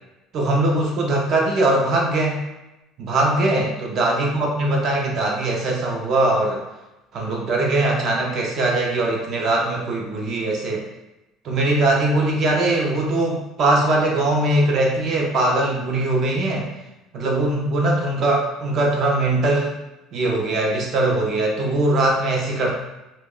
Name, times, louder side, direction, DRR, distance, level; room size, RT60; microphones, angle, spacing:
voice 1, 0.3-2.4 3.0-6.6 7.1-10.8 11.4-16.7 17.1-19.8 20.1-22.7, right 2 dB, 35° right, -1 dB, 0.4 m, -21 dB
2.9 x 2.1 x 3.6 m, 0.97 s
cardioid pair, 175°, 0 cm